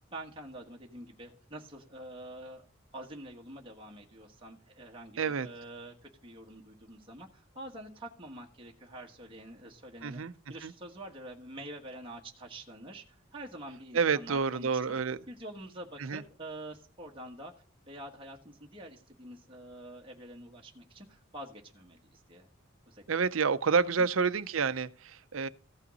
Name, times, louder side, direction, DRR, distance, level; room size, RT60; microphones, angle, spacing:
voice 1, 0.1-2.7 2.9-10.2 10.5-15.0 15.3-17.5 17.9-22.5 22.9-23.3, right 1 dB, 25° right, 1.4 m, -46 dB
voice 2, 5.2-5.5 10.0-10.3 10.6-10.7 13.9-15.2 16.0-16.2 23.1-25.5, right 5 dB, 80° right, 0.6 m, -29 dB
15.0 x 5.6 x 4.1 m
head